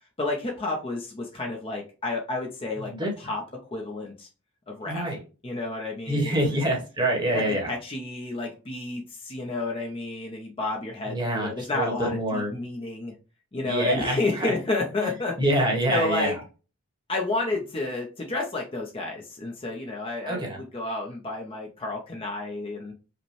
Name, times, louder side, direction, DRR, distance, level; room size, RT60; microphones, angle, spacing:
voice 1, 0.2-2.9 3.2-3.4 3.7-4.3 4.7-5.0 5.4-6.6 7.3-13.1 13.5-15.4 15.9-16.3 17.1-22.9, left 2 dB, 25° left, 0 dB, 0.6 m, -31 dB
voice 2, 2.8-3.1 4.8-5.2 6.1-7.7 11.1-12.5 13.6-14.5 15.0-15.1 15.4-16.4 20.3-20.6, right 1 dB, 20° right, 0 dB, 1.1 m, -26 dB
5.0 x 2.2 x 3.1 m, 0.34 s
head